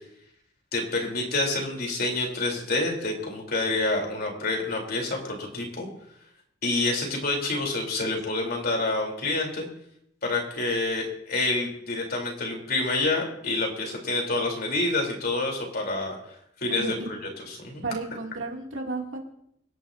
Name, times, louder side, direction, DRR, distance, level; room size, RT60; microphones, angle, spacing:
voice 1, 0.7-5.9 6.6-9.7 10.2-16.2 16.6-17.0 17.5-17.8, left 2 dB, 55° left, 0 dB, 3.7 m, -27 dB
voice 2, 16.7-17.1 17.8-19.2, right 3 dB, 85° right, 1 dB, 2.7 m, -32 dB
26.0 x 11.0 x 2.8 m, 0.73 s
head